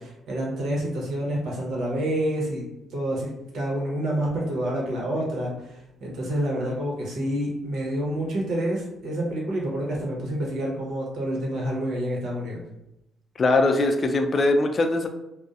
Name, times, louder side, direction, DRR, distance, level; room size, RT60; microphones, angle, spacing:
voice 1, 0.0-2.6 2.9-12.6, right 1 dB, 75° right, -3 dB, 0.8 m, -28 dB
voice 2, 13.4-15.1, left 2 dB, 40° left, 5 dB, 0.3 m, -21 dB
2.6 x 2.0 x 2.3 m, 0.88 s
cardioid pair, 90°, 0 cm